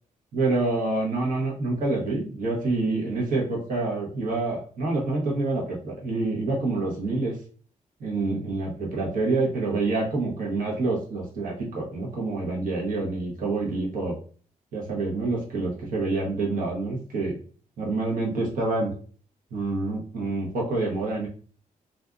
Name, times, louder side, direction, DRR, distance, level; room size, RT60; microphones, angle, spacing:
voice 1, 0.3-7.4 8.0-14.2 14.7-17.4 17.8-18.9 19.5-21.3, right 3 dB, 70° right, -3 dB, 1.0 m, -27 dB
2.5 x 2.3 x 2.4 m, 0.43 s
wide cardioid pair, 155°, 14 cm